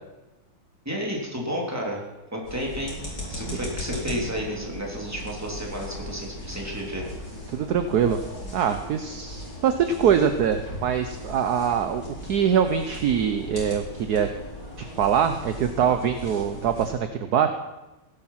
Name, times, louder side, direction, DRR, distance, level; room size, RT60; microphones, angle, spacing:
voice 1, 0.8-3.0 3.3-7.0, equal, 5° right, -2 dB, 3.2 m, -31 dB
sound 1, 2.4-16.9, equal, 50° left, 5.4 m, -38 dB
voice 2, 7.5-8.2 8.5-14.3 14.8-17.5, right 8 dB, 60° right, 9 dB, 1.1 m, -23 dB
17.0 x 10.5 x 5.7 m, 1.1 s
omnidirectional pair, 2.4 m